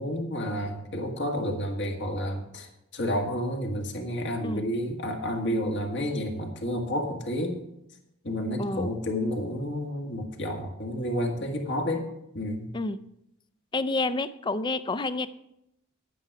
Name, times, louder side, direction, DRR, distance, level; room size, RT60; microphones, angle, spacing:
voice 1, 0.0-7.6 8.2-12.1 12.3-12.7, equal, 60° left, 2 dB, 1.8 m, -30 dB
voice 2, 13.7-15.3, left 3 dB, 20° left, 14 dB, 0.4 m, -29 dB
10.0 x 9.2 x 4.7 m, 0.82 s
head